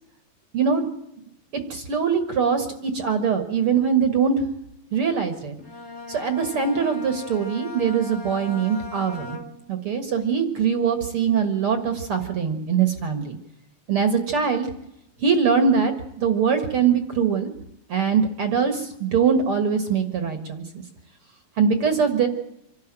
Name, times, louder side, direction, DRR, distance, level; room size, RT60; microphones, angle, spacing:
voice 1, 0.5-0.9 1.2-1.3 1.5-4.4 4.9-5.5 6.1-9.4 9.7-13.4 13.9-14.7 15.2-17.5 17.9-20.8 21.6-22.3, right 6 dB, 55° right, 9 dB, 1.7 m, -22 dB
Bowed string instrument, 5.6-9.8, left 2 dB, 35° left, 1.1 m, -38 dB
26.0 x 12.0 x 9.0 m, 0.82 s
omnidirectional pair, 4.3 m